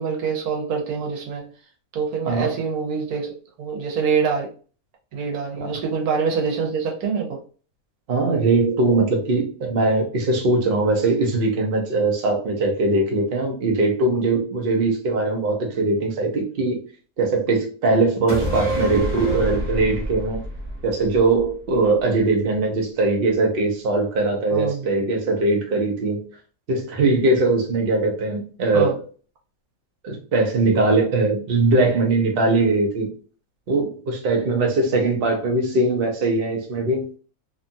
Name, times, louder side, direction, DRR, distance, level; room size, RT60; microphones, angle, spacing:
voice 1, 0.0-1.5 1.9-3.3 3.6-4.5 5.1-7.4 24.5-24.9 28.7-28.9, right 5 dB, 85° right, 1.3 m, -25 dB
voice 2, 8.1-16.8 17.2-20.4 20.8-26.2 26.7-29.0 30.0-33.1 33.7-37.1, right 2 dB, 50° right, 0.8 m, -21 dB
sound 1, 18.3-21.9 22.2-22.3, equal, 25° left, 0.7 m, -27 dB
2.8 x 2.3 x 2.6 m
omnidirectional pair, 1.5 m